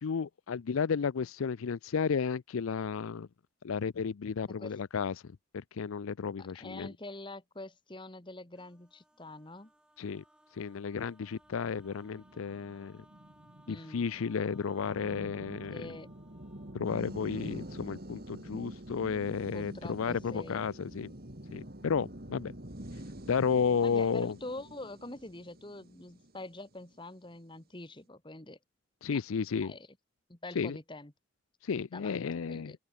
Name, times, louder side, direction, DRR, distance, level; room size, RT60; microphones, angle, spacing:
voice 1, 0.0-3.3 3.6-5.1 5.5-6.9 10.0-10.2 10.5-13.0 13.7-15.9 16.7-21.1 21.5-22.5 23.3-24.4 29.0-29.7 30.6-30.8 31.6-32.7, left 6 dB, 85° left, 0.5 m, -32 dB
voice 2, 6.4-9.7 13.7-14.1 15.7-16.1 19.5-20.7 23.8-28.6 29.1-29.2 29.6-29.9 30.3-31.1 31.9-32.2 32.5-32.7, left 2 dB, 25° left, 1.5 m, -45 dB
sound 1, 8.5-18.1 19.4-19.5 19.7-20.4, right 1 dB, 5° right, 3.1 m, -64 dB
sound 2, 11.5-27.0, right 1 dB, 45° right, 2.9 m, -47 dB
open air
head